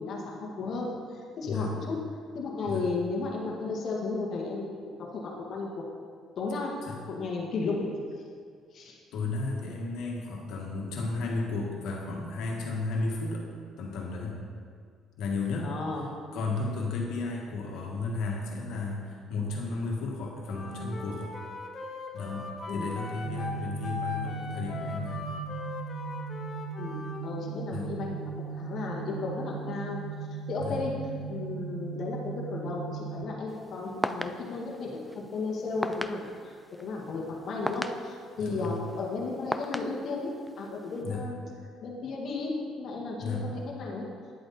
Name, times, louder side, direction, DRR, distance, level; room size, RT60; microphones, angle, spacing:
voice 1, 0.0-2.0 2.3-5.8 6.4-7.9 8.7-9.0 15.6-16.1 22.7-22.9 26.8-28.2 28.5-30.0 30.5-30.9 31.3-41.4 41.8-44.1, left 3 dB, 55° left, -1 dB, 1.8 m, -34 dB
voice 2, 9.1-13.5 13.8-14.4 15.2-15.7 16.3-21.3 22.1-25.4 27.7-27.9 30.6-30.8 38.4-38.8 41.0-41.2 43.2-43.5, left 3 dB, 75° left, -1 dB, 1.9 m, -33 dB
Wind instrument woodwind instrument, 20.5-27.2, left 3 dB, 35° left, 1.1 m, -39 dB
sound 1, 23.2-33.2, right 6 dB, 80° right, 0.5 m, -38 dB
sound 2, 33.5-41.0, equal, ahead, 0.4 m, -39 dB
10.5 x 7.8 x 4.3 m, 2.1 s
cardioid pair, 110°, 0 cm